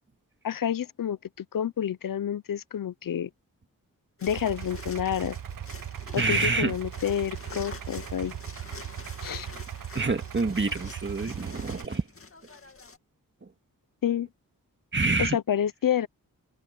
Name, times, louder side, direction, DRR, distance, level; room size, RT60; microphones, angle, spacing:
voice 1, 0.4-3.3 4.2-5.4 6.1-8.4 9.2-9.5 14.0-14.3 15.2-16.1, left 9 dB, 70° left, 0.7 m, -29 dB
sound 1, 4.2-13.0, left 4 dB, 40° left, 2.4 m, -46 dB
Idling, 4.3-11.8, right 10 dB, 70° right, 1.0 m, -39 dB
voice 2, 6.2-6.7 9.9-12.0 14.9-15.4, right 3 dB, 35° right, 2.0 m, -27 dB
wide cardioid pair, 75°, 34 cm